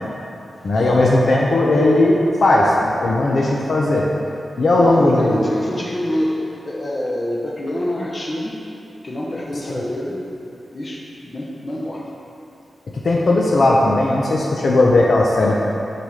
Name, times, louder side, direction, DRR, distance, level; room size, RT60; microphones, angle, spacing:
voice 1, 0.6-4.1 4.6-5.4 12.9-15.6, left 2 dB, 55° left, -3 dB, 0.7 m, -16 dB
voice 2, 4.8-8.6 9.0-10.3 10.7-12.1, left 1 dB, 25° left, -3 dB, 0.9 m, -26 dB
6.7 x 5.9 x 5.0 m, 2.8 s
wide cardioid pair, 155°, 0 cm